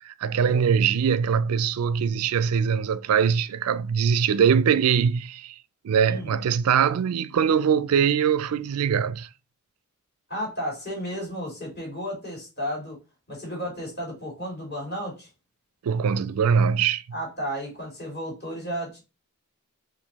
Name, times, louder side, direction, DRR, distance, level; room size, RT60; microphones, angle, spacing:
voice 1, 0.0-5.5 5.8-9.3 15.8-17.0, right 7 dB, 80° right, 0.4 m, -22 dB
voice 2, 10.3-13.0 13.3-15.3 17.1-19.0, equal, 45° left, 2.6 m, -33 dB
4.5 x 2.5 x 4.0 m
head